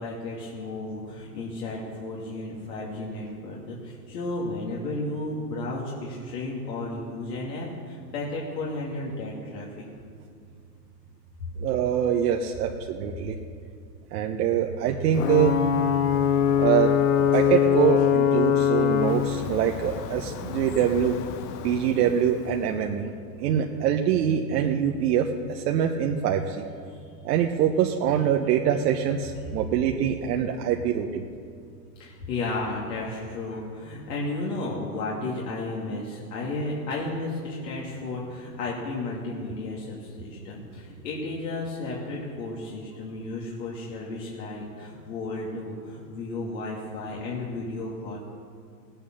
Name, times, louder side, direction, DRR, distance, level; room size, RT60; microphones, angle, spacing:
voice 1, 0.0-9.8 32.0-48.2, left 2 dB, 75° left, -4 dB, 2.8 m, -33 dB
voice 2, 11.6-13.3 14.1-15.5 16.6-21.1 21.6-23.1 23.4-26.6 27.2-31.2, right 9 dB, 70° right, 2 dB, 1.1 m, -24 dB
Ocean / Boat Water vehicle / Alarm, 15.1-22.7, left 9 dB, 50° left, 1.1 m, -24 dB
17.0 x 9.1 x 6.3 m, 2.3 s
hypercardioid pair, 115°, 49 cm